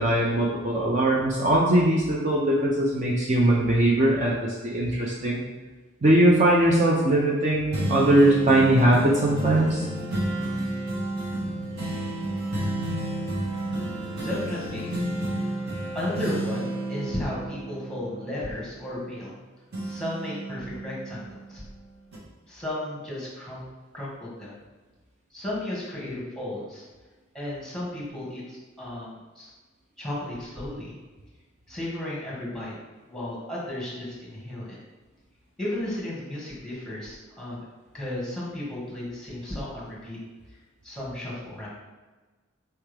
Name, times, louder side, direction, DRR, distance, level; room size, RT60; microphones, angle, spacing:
voice 1, 0.0-5.4 6.0-9.9, right 1 dB, 35° right, -4 dB, 0.5 m, -21 dB
sound 1, 7.7-19.4 19.7-21.6 22.1-22.2, right 1 dB, 55° right, 1.2 m, -31 dB
voice 2, 14.2-14.9 15.9-19.3 19.8-21.6 22.5-23.6 23.9-24.6 25.3-26.8 27.3-29.5 30.0-30.9 31.7-32.7 33.1-34.8 35.6-37.6 37.9-40.2 40.8-41.7, left 1 dB, 5° left, -7 dB, 1.4 m, -34 dB
4.4 x 3.5 x 3.3 m, 1.3 s
head